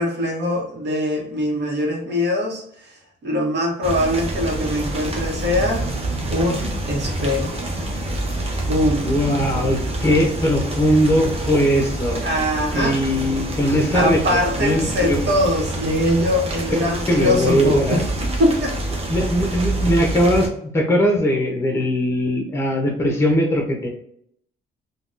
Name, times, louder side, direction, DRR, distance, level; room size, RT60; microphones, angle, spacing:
voice 1, 0.0-5.8 6.3-7.6 8.6-9.1 12.2-12.9 13.9-18.0 18.4-18.7, left 1 dB, 60° right, -1 dB, 1.0 m, -22 dB
sound 1, 3.8-20.5, right 1 dB, 30° right, 0.8 m, -27 dB
voice 2, 9.0-12.2 12.7-15.3 17.1-18.0 19.1-23.9, equal, 15° left, 1 dB, 0.7 m, -20 dB
3.4 x 2.2 x 2.5 m, 0.69 s
cardioid pair, 90°, 20 cm